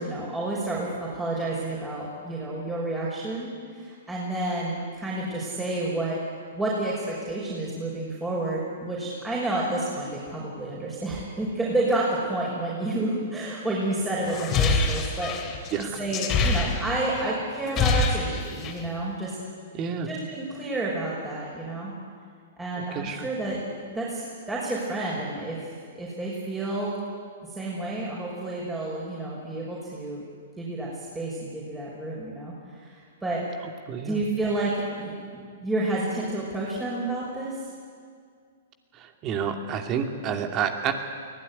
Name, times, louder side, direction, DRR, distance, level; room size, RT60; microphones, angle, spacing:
voice 1, 0.0-6.2 6.5-15.4 15.8-19.4 20.0-21.9 22.6-27.0 27.5-30.2 30.6-33.4 34.0-37.6, right 2 dB, 10° right, -5 dB, 5.9 m, -30 dB
sound 1, 14.3-17.2 17.5-18.9, left 4 dB, 30° left, 3.1 m, -25 dB
voice 2, 15.7-16.0 19.7-20.1 22.8-23.3 33.9-34.2 38.9-40.9, right 7 dB, 35° right, 5 dB, 2.5 m, -29 dB
23.0 x 17.0 x 9.8 m, 2.1 s
hypercardioid pair, 115°, 0 cm